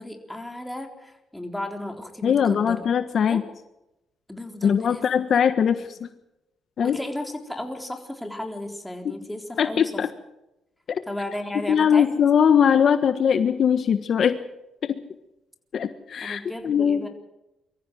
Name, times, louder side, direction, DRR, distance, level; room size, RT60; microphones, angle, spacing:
voice 1, 0.0-3.0 3.3-3.4 4.3-5.4 6.8-9.9 11.1-12.1 16.2-17.1, left 1 dB, 5° left, 4 dB, 3.8 m, -34 dB
voice 2, 2.2-3.4 4.6-6.1 6.8-7.0 9.0-9.1 9.6-10.1 10.9-11.0 11.7-14.4 14.8-15.0 15.7-17.1, left 7 dB, 55° left, 10 dB, 1.4 m, -21 dB
24.0 x 14.5 x 7.8 m, 0.92 s
cardioid pair, 90°, 0 cm